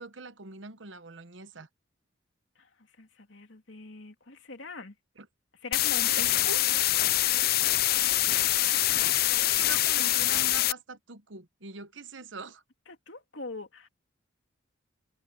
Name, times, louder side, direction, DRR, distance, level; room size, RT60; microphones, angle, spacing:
voice 1, 0.0-1.7 5.2-5.3 6.2-6.6 9.6-12.6, right 4 dB, 70° right, 1.1 m, -43 dB
voice 2, 2.6-4.9 5.6-6.6 8.9-9.5 12.9-13.9, left 3 dB, 70° left, 3.1 m, -43 dB
sound 1, 5.7-10.7, left 15 dB, 50° left, 0.5 m, -25 dB
head